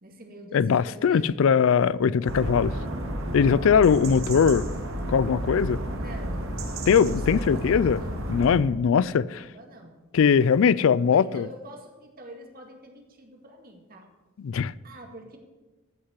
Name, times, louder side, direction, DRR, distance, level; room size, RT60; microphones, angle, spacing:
voice 1, 0.0-1.3 5.9-6.6 7.1-8.2 9.4-10.0 11.1-14.1 14.8-15.4, right 1 dB, 45° right, 2.1 m, -45 dB
voice 2, 0.5-2.8 3.3-4.7 5.1-5.8 6.9-8.0 8.3-9.5 10.1-11.5 14.4-14.7, left 6 dB, 65° left, 0.4 m, -21 dB
sound 1, 2.2-8.6, right 1 dB, 70° right, 1.9 m, -31 dB
14.0 x 6.5 x 8.1 m
head